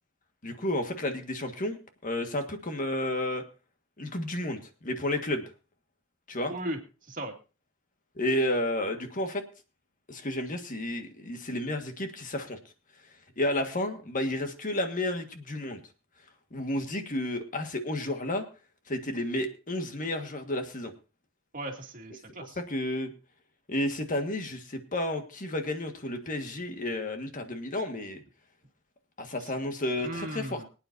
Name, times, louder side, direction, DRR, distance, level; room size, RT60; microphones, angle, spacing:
voice 1, 0.4-3.4 4.0-5.4 6.3-6.5 8.1-9.4 10.1-12.6 13.4-15.8 16.5-18.4 18.9-20.9 22.7-23.1 23.7-28.2 29.2-30.6, left 1 dB, 40° left, 6 dB, 1.7 m, -31 dB
voice 2, 6.5-6.8 7.1-7.3 21.5-22.6 29.4-29.5 30.0-30.6, right 1 dB, 45° right, 2 dB, 2.3 m, -37 dB
24.0 x 9.1 x 2.7 m, 0.33 s
head